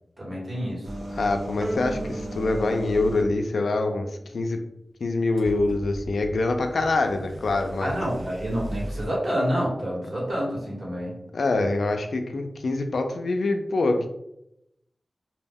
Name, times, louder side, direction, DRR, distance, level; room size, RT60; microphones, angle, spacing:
voice 1, 0.2-0.9 7.8-11.1, equal, 50° right, -5 dB, 1.1 m, -28 dB
sound 1, 0.8-3.4 5.4-9.1, right 1 dB, 90° right, 0.5 m, -37 dB
voice 2, 1.1-4.1 4.3-4.6 5.0-7.9 11.3-14.1, left 2 dB, 85° left, 5 dB, 0.3 m, -25 dB
sound 2, 1.6-4.2, right 1 dB, 25° right, 0.6 m, -37 dB
2.2 x 2.1 x 3.4 m, 0.82 s
wide cardioid pair, 105°, 0 cm